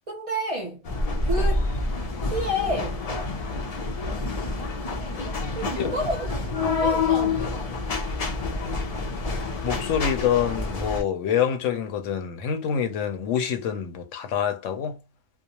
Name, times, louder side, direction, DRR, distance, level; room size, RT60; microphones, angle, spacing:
voice 1, 0.1-0.9 1.2-1.7 2.2-3.0 5.5-6.3 6.6-7.6, equal, 45° right, 0.4 m, -30 dB
sound 1, 0.9-11.0, left 3 dB, 55° left, 0.4 m, -27 dB
voice 2, 9.6-15.0, left 8 dB, 75° left, 0.9 m, -26 dB
2.4 x 2.0 x 2.8 m
omnidirectional pair, 1.3 m